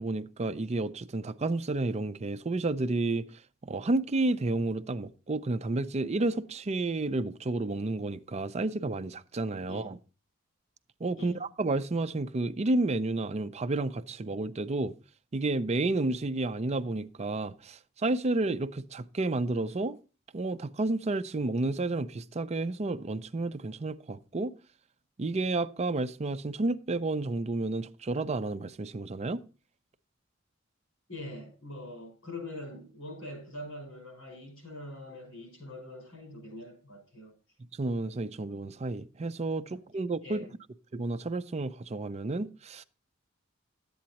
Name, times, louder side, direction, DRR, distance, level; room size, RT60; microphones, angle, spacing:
voice 1, 0.0-10.0 11.0-14.9 15.3-20.0 20.3-24.5 25.2-29.4 37.7-40.4 40.9-42.8, right 2 dB, 35° right, 0.5 m, -31 dB
voice 2, 31.1-37.3 40.2-40.5, left 1 dB, 85° left, 5.9 m, -43 dB
11.5 x 8.6 x 2.9 m
head